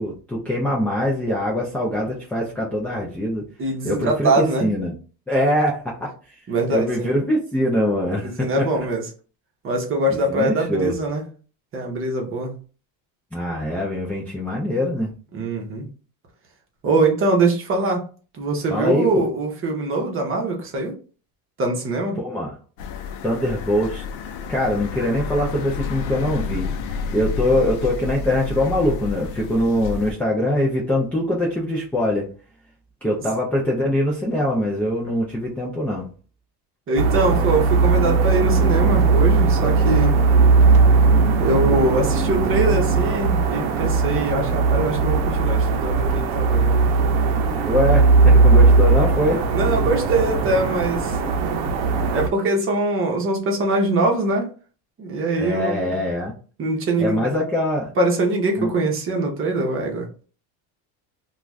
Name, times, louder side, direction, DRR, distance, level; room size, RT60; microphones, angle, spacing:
voice 1, 0.0-3.4 3.8-4.9 5.3-6.1 6.7-8.7 10.1-10.9 13.3-15.1 18.7-19.2 22.2-22.5 23.2-24.0 24.5-32.3 33.0-36.1 47.7-49.4 55.4-56.3 57.0-57.9 58.6-58.7, left 1 dB, 5° left, -4 dB, 0.3 m, -23 dB
voice 2, 3.6-4.7 6.5-7.1 8.2-9.0 9.6-11.2 11.7-12.5 15.3-15.9 16.8-18.0 18.3-20.9 21.6-22.2 36.9-40.2 41.4-46.9 47.2-47.4 49.5-51.2 52.1-54.5 55.0-55.9 56.6-57.2 58.0-60.2, right 2 dB, 30° right, 0 dB, 0.9 m, -23 dB
sound 1, 22.8-30.1, left 5 dB, 65° left, 0.6 m, -30 dB
sound 2, 37.0-52.3, right 4 dB, 65° right, 0.7 m, -18 dB
2.4 x 2.4 x 3.1 m, 0.38 s
cardioid pair, 135°, 42 cm